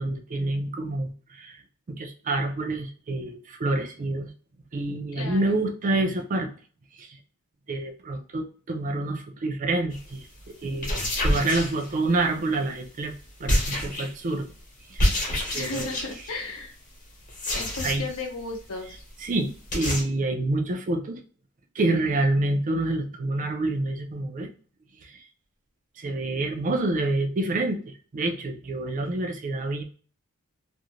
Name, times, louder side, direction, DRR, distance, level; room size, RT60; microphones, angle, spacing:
voice 1, 0.0-1.6 1.9-4.3 4.7-6.5 6.9-7.2 7.7-10.9 11.2-13.1 13.4-14.5 14.9-15.2 15.5-15.9 17.8-18.0 19.2-21.2 21.7-24.5 25.0-25.2 26.0-29.8, right 2 dB, 35° right, 4 dB, 0.4 m, -27 dB
voice 2, 5.1-5.6 15.5-16.7 17.5-19.0, left 3 dB, 65° left, 3 dB, 0.7 m, -35 dB
sound 1, 9.9-10.1 10.7-12.3 13.5-14.3 15.0-16.3 17.3-18.2 18.5-18.6 18.9-19.0 19.2-19.3 19.7-20.0, left 1 dB, 35° left, 1.0 m, -27 dB
2.5 x 2.1 x 2.9 m, 0.40 s
head